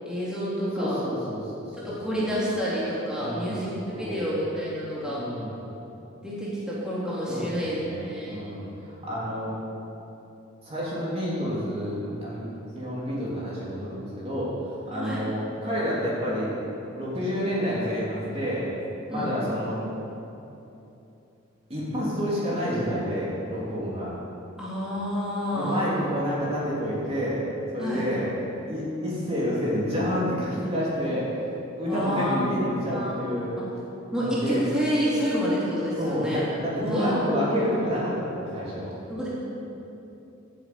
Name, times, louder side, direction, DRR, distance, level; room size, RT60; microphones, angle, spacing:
voice 1, 0.0-1.0 1.8-5.2 6.2-8.5 14.9-15.2 19.1-19.3 24.6-25.9 27.8-28.1 31.8-32.3 32.9-33.7 34.1-36.4 36.8-37.2 39.1-39.3, equal, 5° right, -9 dB, 3.1 m, -29 dB
voice 2, 0.8-2.3 3.2-3.7 3.9-4.2 5.0-5.6 7.3-9.5 10.6-12.4 12.7-14.5 14.9-16.6 17.0-18.7 19.1-19.8 21.7-24.1 25.5-27.4 27.7-28.3 28.7-31.3 31.7-33.5 34.1-34.6 36.0-38.9, equal, 30° right, -7 dB, 3.1 m, -29 dB
13.0 x 8.2 x 8.5 m, 2.9 s
head